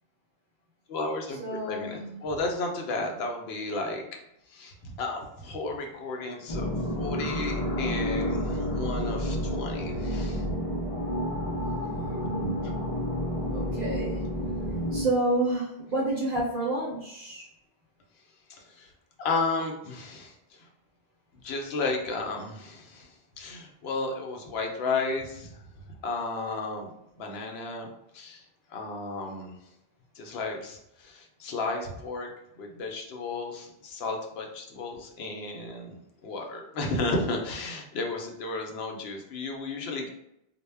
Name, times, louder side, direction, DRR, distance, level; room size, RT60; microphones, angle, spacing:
voice 1, 0.9-4.0 4.5-10.4 11.4-11.6 12.4-12.5 18.5-18.9 19.2-20.7 21.4-25.6 26.0-26.9 27.2-27.9 28.1-28.4 28.7-29.6 30.2-32.3 32.6-40.1, left 3 dB, 75° left, 2 dB, 0.8 m, -33 dB
voice 2, 1.4-2.2 11.8-13.1 13.5-14.2 14.9-17.4, right 2 dB, 55° right, -4 dB, 0.7 m, -30 dB
sound 1, 6.5-15.0, equal, 45° left, 0.5 m, -30 dB
2.1 x 2.0 x 3.3 m, 0.81 s
omnidirectional pair, 1.1 m